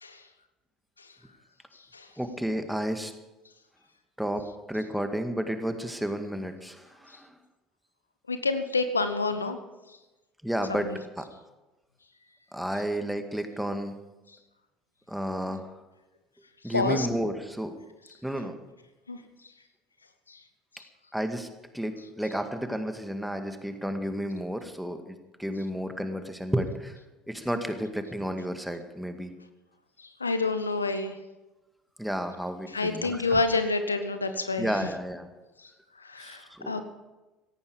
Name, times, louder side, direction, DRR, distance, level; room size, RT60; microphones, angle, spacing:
voice 1, 2.2-3.1 4.2-4.4 4.7-7.3 10.4-10.9 11.2-11.3 12.5-14.0 15.1-15.8 16.6-17.7 18.2-18.6 21.1-21.5 21.7-27.0 27.3-29.3 32.0-33.4 34.6-35.3 36.2-36.8, equal, ahead, 7 dB, 2.0 m, -32 dB
voice 2, 8.3-9.6 10.7-11.0 16.6-17.1 19.1-19.2 20.3-20.4 20.7-20.8 30.0-31.2 32.7-34.8 35.6-35.7 36.0-36.8, left 3 dB, 85° left, 10 dB, 0.9 m, -28 dB
17.5 x 14.5 x 5.3 m, 1.1 s
figure-of-eight pair, 60°, 0 cm